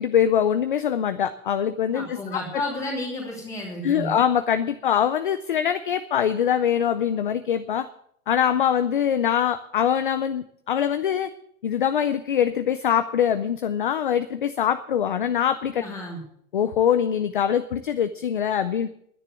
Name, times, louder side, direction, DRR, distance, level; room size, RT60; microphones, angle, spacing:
voice 1, 0.0-2.4 3.8-7.9 8.3-11.3 11.6-15.8 16.5-18.9, left 9 dB, 40° left, 11 dB, 0.5 m, -23 dB
voice 2, 1.9-4.2 15.8-16.2, left 1 dB, 5° left, -2 dB, 2.9 m, -32 dB
10.0 x 10.0 x 9.1 m, 0.67 s
hypercardioid pair, 175°, 42 cm